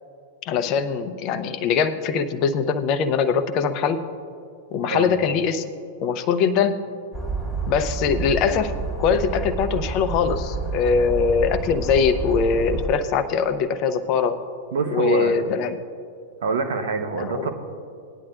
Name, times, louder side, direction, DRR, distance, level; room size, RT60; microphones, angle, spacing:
voice 1, 0.4-4.0 4.7-5.6 6.0-6.8 7.7-8.7 9.0-14.4 14.9-15.8 17.2-17.5, left 6 dB, 40° left, 10 dB, 0.8 m, -22 dB
sound 1, 7.1-12.9, right 3 dB, 5° left, 2.1 m, -29 dB
voice 2, 14.7-15.4 16.4-17.5, right 4 dB, 65° right, 6 dB, 1.0 m, -25 dB
18.5 x 10.5 x 2.6 m, 2.5 s
figure-of-eight pair, 95°, 0 cm